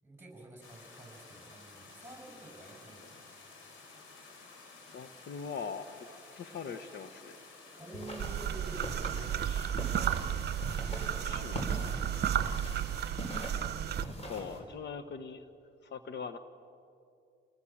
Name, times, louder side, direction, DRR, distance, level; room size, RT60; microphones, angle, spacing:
voice 1, 0.0-3.2 7.8-8.8 10.6-12.6, right 2 dB, 10° right, 2 dB, 7.0 m, -49 dB
sound 1, 0.6-13.1, left 3 dB, 90° left, 4.5 m, -53 dB
voice 2, 4.9-6.1 6.4-7.4 9.4-9.7 11.2-11.6 12.2-12.3 14.0-15.5 15.8-16.4, left 6 dB, 60° left, 9 dB, 1.2 m, -42 dB
sound 2, 7.9-14.6, equal, 30° left, 5.4 m, -43 dB
sound 3, 8.2-14.1, right 9 dB, 55° right, 0.9 m, -33 dB
28.5 x 19.5 x 7.4 m, 2.5 s
cardioid pair, 90°, 20 cm